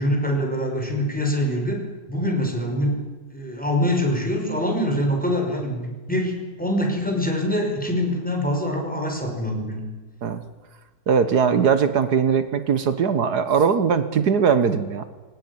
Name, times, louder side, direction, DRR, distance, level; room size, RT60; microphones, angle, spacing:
voice 1, 0.0-3.1 3.3-10.0, equal, 5° left, 2 dB, 5.6 m, -24 dB
voice 2, 11.1-15.0, right 6 dB, 80° right, 11 dB, 1.9 m, -20 dB
23.0 x 18.0 x 9.8 m, 1.3 s
omnidirectional pair, 1.7 m